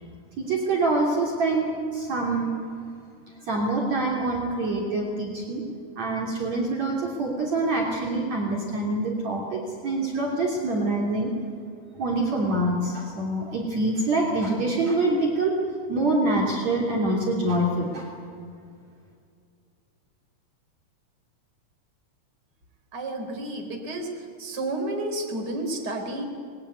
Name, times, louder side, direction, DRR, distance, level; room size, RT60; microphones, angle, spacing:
voice 1, 0.4-2.5 3.5-5.6 6.0-11.3 12.0-15.6 15.9-18.1, right 2 dB, 45° right, -1 dB, 4.1 m, -25 dB
voice 2, 22.9-24.1 24.4-26.2, right 1 dB, 25° right, 3 dB, 4.2 m, -31 dB
27.5 x 22.0 x 9.6 m, 2.3 s
omnidirectional pair, 4.7 m